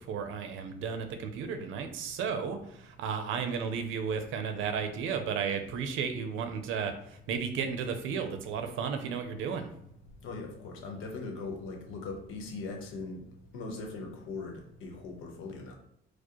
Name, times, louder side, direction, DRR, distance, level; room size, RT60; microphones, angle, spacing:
voice 1, 0.0-6.9 7.3-9.7, right 6 dB, 90° right, 7 dB, 0.6 m, -33 dB
voice 2, 10.2-13.2 13.5-15.7, left 3 dB, 90° left, 2 dB, 0.9 m, -40 dB
4.7 x 2.1 x 3.0 m, 0.75 s
cardioid pair, 90°, 20 cm